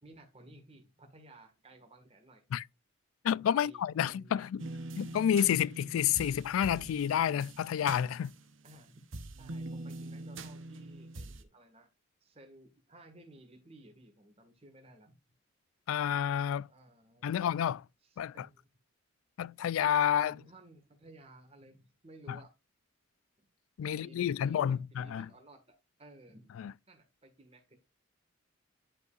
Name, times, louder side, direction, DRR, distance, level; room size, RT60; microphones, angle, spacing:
voice 1, 0.0-2.4 3.5-4.4 8.6-9.1 9.4-11.9 12.2-15.2 16.7-17.5 18.0-18.7 20.2-22.5 23.4-23.5 23.8-27.8, right 1 dB, 30° right, 1.6 m, -56 dB
voice 2, 3.2-4.6 5.0-8.3 15.9-16.7 17.2-17.8 18.2-18.5 19.4-20.3 22.3-22.4 23.8-25.3 26.6-26.7, left 9 dB, 85° left, 0.3 m, -29 dB
sound 1, 4.6-8.8 9.1-11.4, right 2 dB, 70° right, 0.9 m, -44 dB
10.5 x 5.4 x 2.4 m
head